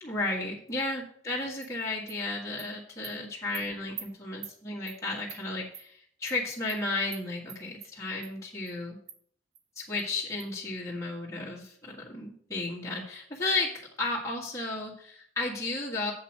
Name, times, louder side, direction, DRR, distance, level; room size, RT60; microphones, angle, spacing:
voice 1, 0.0-9.0 9.8-16.1, left 2 dB, 15° left, -5 dB, 1.7 m, -33 dB
Animal, 1.6-1.7 2.1-2.2 2.6-2.7 3.0-3.1 3.5-3.6 4.0-4.1 4.4-4.5 4.9-5.0 5.3-5.4 5.7-5.8 6.3-6.4 6.7-6.8 7.1-7.2 7.5-7.9 8.2-8.3 8.7-8.8 9.1-9.2 9.5-9.6 10.0-10.1 10.4-10.5, right 9 dB, 80° right, 1.0 m, -43 dB
7.6 x 5.5 x 7.4 m, 0.62 s
head